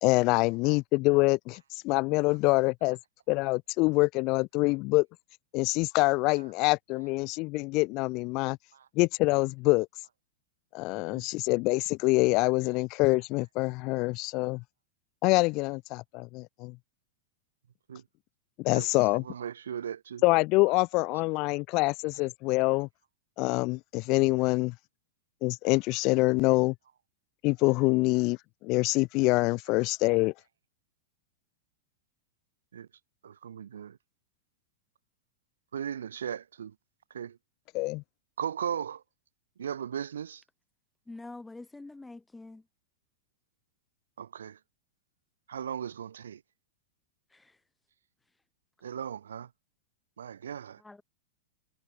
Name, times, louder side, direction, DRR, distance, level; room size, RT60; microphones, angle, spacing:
voice 1, 0.0-3.0 3.3-5.1 5.5-8.6 9.0-9.9 10.7-14.6 15.2-16.7 18.6-19.2 20.2-22.9 23.4-24.7 25.4-26.7 27.4-30.3 37.7-38.0, left 24 dB, 45° left, 0.5 m, -25 dB
voice 2, 18.7-20.2 20.7-20.8 21.7-21.8 32.7-32.9 33.2-34.0 35.7-36.7 37.1-37.4 38.4-39.0 39.6-40.4 44.2-44.6 45.5-46.4 48.8-49.5 50.2-50.8, right 8 dB, 75° right, 1.6 m, -37 dB
voice 3, 41.1-42.7 47.3-47.6 50.8-51.0, left 2 dB, 10° left, 3.2 m, -46 dB
hypercardioid pair, 100°, 0 cm